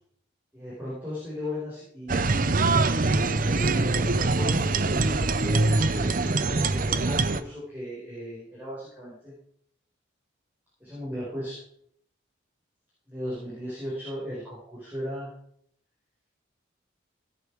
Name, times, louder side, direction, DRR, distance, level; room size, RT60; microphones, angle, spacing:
voice 1, 0.5-2.2 3.3-9.3 10.8-11.6 13.1-15.3, left 1 dB, 10° right, -8 dB, 4.7 m, -37 dB
sound 1, 2.1-7.4, right 3 dB, 45° right, 0.7 m, -23 dB
17.5 x 7.0 x 4.7 m, 0.65 s
head